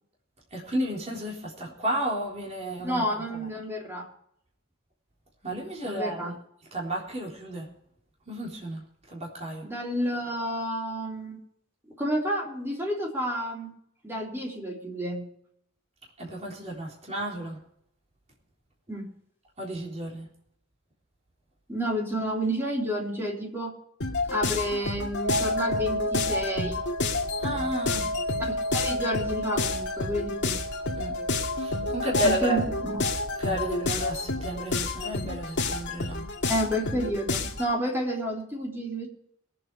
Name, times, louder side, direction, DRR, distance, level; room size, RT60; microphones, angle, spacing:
voice 1, 0.5-3.0 3.3-3.5 5.4-6.4 6.7-7.7 8.3-9.7 16.2-17.6 19.6-20.3 27.4-28.1 31.0-31.2 31.5-32.6 33.4-36.3, right 1 dB, 30° right, -3 dB, 3.8 m, -32 dB
voice 2, 2.8-4.0 5.8-6.4 9.6-11.4 12.0-13.7 14.0-15.3 18.9-19.1 21.7-23.7 24.2-26.8 28.5-30.6 32.2-32.6 32.9-33.0 36.5-39.1, equal, 10° right, -2 dB, 3.4 m, -30 dB
sound 1, 24.0-37.7, left 3 dB, 55° left, 1.9 m, -30 dB
sound 2, 25.2-33.9, equal, 75° right, 4.6 m, -33 dB
22.0 x 7.9 x 4.9 m, 0.71 s
head